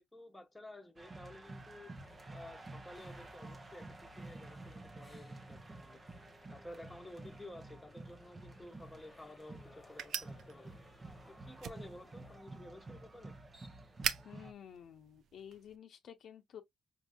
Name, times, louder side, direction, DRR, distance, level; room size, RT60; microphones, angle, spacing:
voice 1, 0.0-1.9 2.3-6.0 6.5-10.7 11.3-13.3, left 1 dB, 10° left, 1.1 m, -53 dB
sound 1, 1.0-14.5, right 2 dB, 30° right, 0.8 m, -51 dB
sound 2, 1.4-12.4, left 3 dB, 30° left, 1.1 m, -63 dB
sound 3, 8.6-15.8, right 8 dB, 70° right, 0.5 m, -45 dB
voice 2, 14.2-16.6, left 9 dB, 65° left, 0.7 m, -52 dB
5.3 x 2.6 x 2.3 m
cardioid pair, 90°, 0 cm